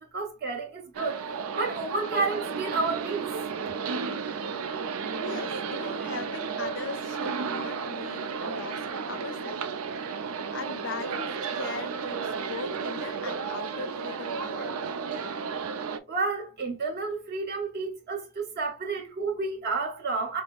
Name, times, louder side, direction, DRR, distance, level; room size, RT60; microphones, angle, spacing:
voice 1, 0.1-1.2 1.6-3.3 16.1-20.4, right 3 dB, 50° right, 1.2 m, -30 dB
sound 1, 0.9-16.0, right 5 dB, 75° right, 0.5 m, -33 dB
voice 2, 5.2-9.6 10.0-10.1 10.5-14.8, left 4 dB, 60° left, 0.6 m, -40 dB
5.7 x 2.0 x 2.4 m
head